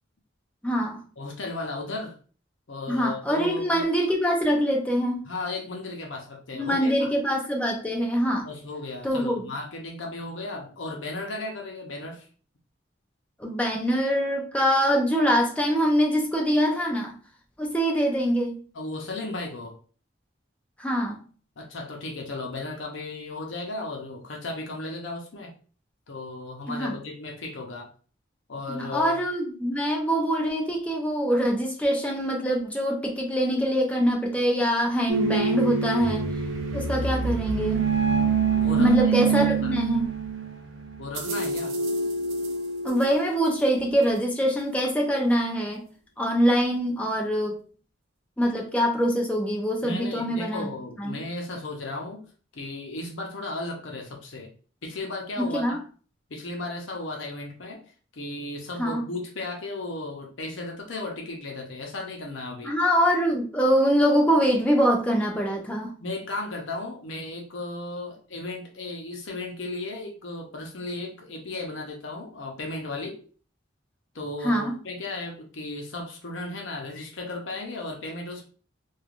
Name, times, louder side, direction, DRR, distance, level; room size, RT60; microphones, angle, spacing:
voice 1, 0.6-1.0 2.9-5.2 6.5-8.5 9.0-9.5 13.4-17.1 17.6-18.6 20.8-21.2 26.7-27.0 28.7-36.2 36.7-37.8 38.8-40.1 42.8-45.9 46.2-47.5 48.4-50.7 51.0-51.2 55.4-55.8 58.8-59.0 62.6-66.0 74.4-74.8, equal, 5° left, 0 dB, 0.5 m, -24 dB
voice 2, 1.2-2.1 2.7-3.9 5.2-7.1 8.4-12.3 18.7-19.7 21.6-25.5 26.1-27.9 28.5-29.1 38.5-39.8 41.0-41.8 49.8-52.2 52.5-54.5 54.8-55.8 56.3-57.8 58.1-62.7 66.0-73.2 74.1-78.4, left 2 dB, 75° left, 0 dB, 0.7 m, -35 dB
sound 1, 35.1-44.2, right 5 dB, 80° right, 0.5 m, -26 dB
3.1 x 2.3 x 2.4 m, 0.40 s
head